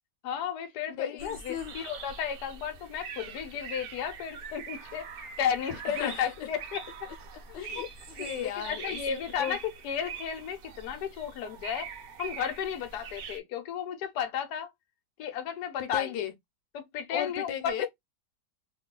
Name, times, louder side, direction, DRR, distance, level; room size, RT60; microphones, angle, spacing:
voice 1, 0.2-7.1 7.5-7.9 8.2-11.9 12.2-14.7 15.2-16.1 16.7-17.7, left 8 dB, 70° left, 1.3 m, -34 dB
voice 2, 0.9-1.8 5.9-6.3 7.5-9.6 15.8-16.3 17.1-17.9, left 10 dB, 90° left, 1.3 m, -36 dB
sound 1, 1.2-13.4, right 6 dB, 65° right, 1.0 m, -43 dB
3.1 x 2.3 x 3.6 m
omnidirectional pair, 1.8 m